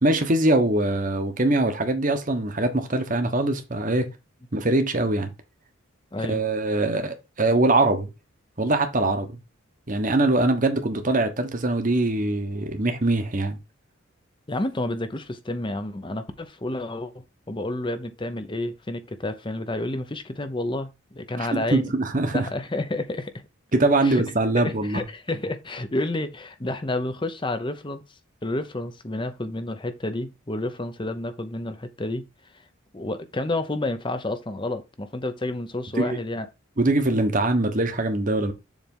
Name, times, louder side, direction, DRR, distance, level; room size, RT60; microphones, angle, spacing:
voice 1, 0.0-4.1 4.5-5.3 6.3-8.1 8.6-9.4 9.9-13.6 21.4-22.5 23.7-25.0 36.0-36.2 36.8-38.5, right 2 dB, 40° right, 1.2 m, -23 dB
voice 2, 14.5-21.9 22.3-23.3 24.0-24.2 24.6-28.0 28.4-32.3 32.9-36.5, left 2 dB, 25° left, 0.8 m, -30 dB
7.3 x 3.5 x 5.4 m
head